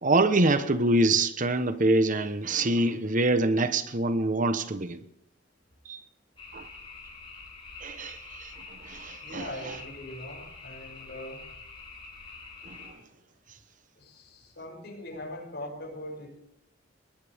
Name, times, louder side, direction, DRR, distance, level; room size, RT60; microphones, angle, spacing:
voice 1, 0.0-5.0 5.9-6.0 6.5-6.7 7.8-9.5 12.7-12.9, right 2 dB, 45° right, 1.0 m, -25 dB
sound 1, 6.4-12.9, left 4 dB, 25° left, 7.8 m, -46 dB
voice 2, 9.2-11.4 14.0-16.3, left 1 dB, 60° left, 6.8 m, -41 dB
20.5 x 19.5 x 3.6 m
head